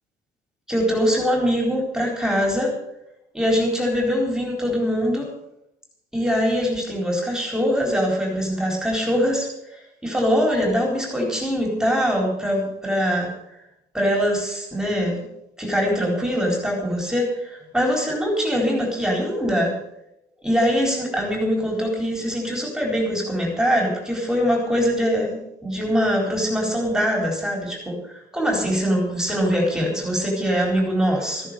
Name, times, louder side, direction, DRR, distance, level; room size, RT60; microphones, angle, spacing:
voice 1, 0.7-2.8 3.3-5.3 6.1-13.3 13.9-15.2 15.6-19.8 20.4-31.4, equal, 5° right, 0 dB, 4.2 m, -23 dB
14.5 x 10.0 x 7.0 m, 0.82 s
cardioid pair, 110°, 17 cm